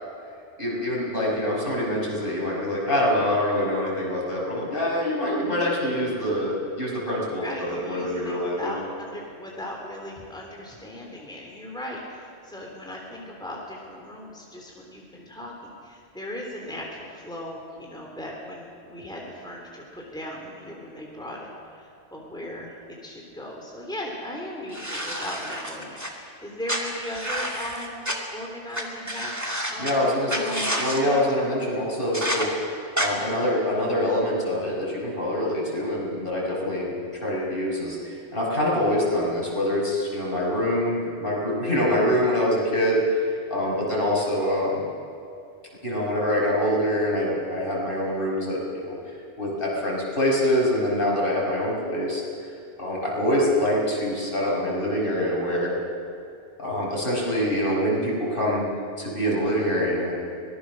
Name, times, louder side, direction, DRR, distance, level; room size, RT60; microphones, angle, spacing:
voice 1, 0.6-8.8 29.8-30.3 30.8-32.5 33.0-36.9 37.2-44.8 45.8-49.0 49.4-52.2 52.8-55.8 56.6-58.7 59.0-60.1, left 1 dB, 50° left, -4 dB, 6.3 m, -25 dB
voice 2, 7.4-31.3, left 1 dB, 5° left, -2 dB, 3.3 m, -37 dB
sound 1, 24.7-26.1 26.7-28.2 28.7-28.8 29.1-29.9 30.3-31.0 32.1-32.5 33.0-33.1, equal, 15° right, 2.5 m, -29 dB
24.5 x 19.5 x 6.4 m, 2.5 s
omnidirectional pair, 1.2 m